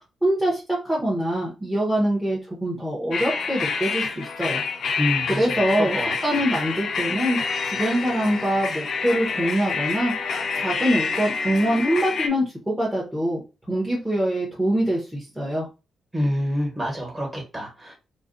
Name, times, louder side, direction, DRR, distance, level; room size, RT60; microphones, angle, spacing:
voice 1, 0.2-5.0 5.3-6.0 6.2-10.1 10.5-13.4 13.7-15.7, equal, 5° right, -5 dB, 0.7 m, -24 dB
sound 1, 3.1-12.3, left 5 dB, 60° left, 0.4 m, -27 dB
voice 2, 5.0-6.4 16.1-17.9, equal, 25° right, -1 dB, 1.2 m, -27 dB
2.5 x 2.1 x 2.5 m, 0.30 s
cardioid pair, 85°, 0 cm